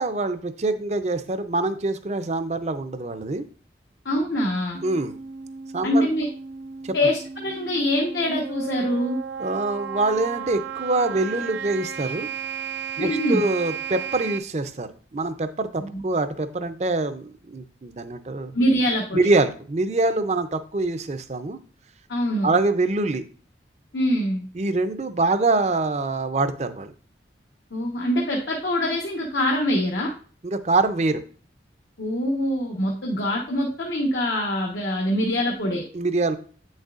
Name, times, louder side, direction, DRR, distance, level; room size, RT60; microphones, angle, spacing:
voice 1, 0.0-3.4 4.8-5.1 5.7-6.0 6.8-6.9 9.4-12.3 13.0-18.5 19.1-21.6 22.4-23.2 24.5-26.9 30.4-31.2 35.9-36.4, right 2 dB, 35° right, 10 dB, 0.5 m, -24 dB
voice 2, 4.0-4.8 5.8-6.3 6.9-9.2 13.0-13.4 15.8-16.0 18.5-19.3 22.1-22.5 23.9-24.4 27.7-30.1 32.0-35.8, equal, 75° left, 0 dB, 1.1 m, -24 dB
sound 1, 4.7-14.4, right 7 dB, 90° right, 0.5 m, -34 dB
8.4 x 6.4 x 2.4 m, 0.41 s
head